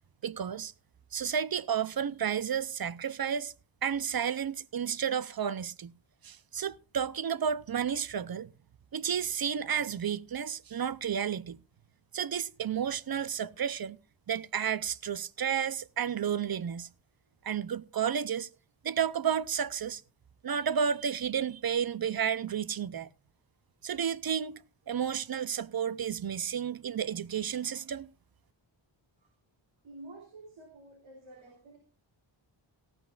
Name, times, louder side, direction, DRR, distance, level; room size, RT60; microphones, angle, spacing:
voice 1, 0.2-0.7 1.1-3.5 3.8-5.9 6.2-8.5 8.9-11.6 12.1-14.0 14.3-16.9 17.4-18.5 18.8-20.0 20.4-23.1 23.8-28.1, right 8 dB, 50° right, 0.7 m, -32 dB
voice 2, 29.8-31.8, right 2 dB, 85° right, 3.3 m, -50 dB
18.0 x 13.5 x 2.4 m
wide cardioid pair, 90°, 47 cm